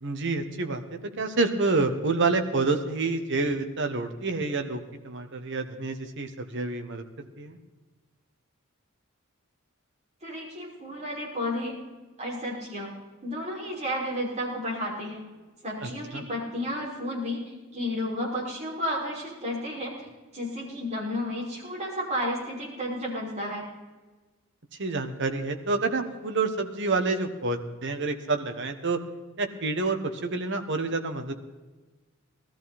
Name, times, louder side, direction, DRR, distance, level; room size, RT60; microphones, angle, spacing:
voice 1, 0.0-7.0 7.4-7.6 15.8-16.3 24.8-29.0 29.4-31.3, right 3 dB, 60° right, 6 dB, 1.4 m, -28 dB
voice 2, 10.2-11.7 12.2-12.9 13.2-15.2 15.6-20.1 20.3-23.7, left 1 dB, 35° right, -4 dB, 5.7 m, -32 dB
19.0 x 13.5 x 4.3 m, 1.3 s
head